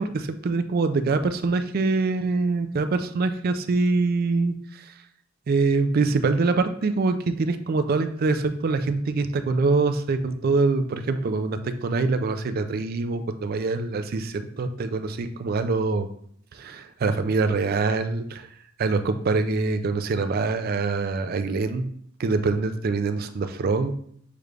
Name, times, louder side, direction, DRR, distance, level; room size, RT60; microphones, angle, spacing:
voice 1, 0.0-4.5 5.5-16.1 16.6-18.5 18.8-21.9 22.2-23.9, right 3 dB, 45° right, 10 dB, 0.4 m, -24 dB
6.6 x 2.4 x 3.2 m, 0.65 s
head